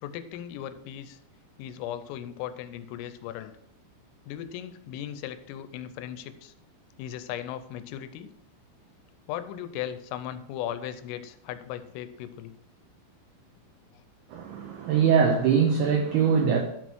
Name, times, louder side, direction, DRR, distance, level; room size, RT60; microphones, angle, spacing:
voice 1, 0.0-1.2 1.6-3.5 4.3-6.5 7.0-8.3 9.3-12.5, left 11 dB, 90° left, 11 dB, 3.3 m, -37 dB
voice 2, 14.3-16.6, right 6 dB, 90° right, 3 dB, 2.2 m, -22 dB
11.0 x 6.2 x 4.6 m, 0.77 s
omnidirectional pair, 5.8 m